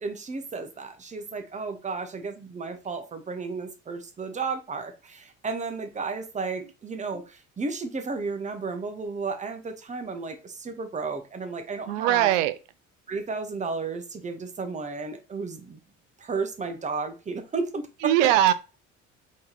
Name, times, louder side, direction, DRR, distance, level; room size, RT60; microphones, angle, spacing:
voice 1, 0.0-12.3 13.1-15.8 16.2-18.3, right 4 dB, 20° right, 0.8 m, -33 dB
voice 2, 11.9-12.5 18.0-18.5, right 13 dB, 65° right, 0.5 m, -20 dB
3.7 x 3.0 x 4.0 m
figure-of-eight pair, 55°, 40 cm